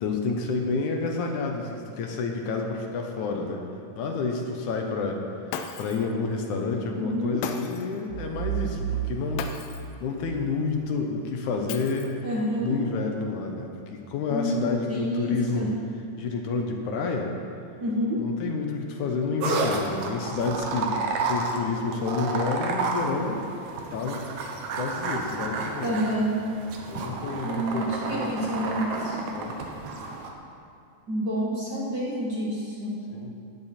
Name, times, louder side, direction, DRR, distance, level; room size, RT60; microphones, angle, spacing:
voice 1, 0.0-3.6 4.0-5.2 5.8-9.4 10.0-12.2 12.6-15.7 16.2-17.3 18.2-20.9 21.3-23.4 23.9-24.2 24.8-26.0 26.9-28.7 29.3-29.6 33.1-33.3, left 4 dB, 70° left, 2 dB, 2.3 m, -29 dB
Shatter, 5.5-6.1 7.4-8.0 9.4-10.0 11.7-12.3, left 7 dB, 90° left, 2.4 m, -36 dB
voice 2, 6.9-7.4 12.2-12.7 14.3-15.7 17.8-18.2 25.8-26.3 27.4-29.2 31.1-33.0, equal, 40° right, -6 dB, 1.7 m, -28 dB
sound 1, 8.1-10.9, right 10 dB, 85° right, 2.2 m, -33 dB
sound 2, 19.4-30.3, right 3 dB, 70° right, 2.2 m, -31 dB
15.5 x 10.5 x 4.3 m, 2.5 s
omnidirectional pair, 3.8 m